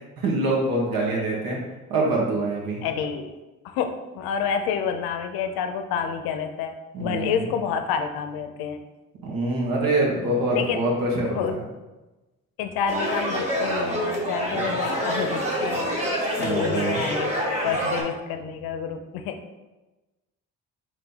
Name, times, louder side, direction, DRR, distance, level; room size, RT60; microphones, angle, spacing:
voice 1, 0.2-1.6 1.9-2.8 6.9-7.4 9.2-11.6 14.5-14.8 16.4-17.0, right 2 dB, 75° right, -3 dB, 1.4 m, -25 dB
voice 2, 2.8-3.3 3.6-8.8 10.5-10.8 11.3-11.6 12.6-15.9 16.4-19.4, left 7 dB, 85° left, 6 dB, 0.5 m, -29 dB
sound 1, 12.9-18.0, equal, 20° right, 1.3 m, -26 dB
4.0 x 3.1 x 3.5 m, 1.1 s
supercardioid pair, 60°, 36 cm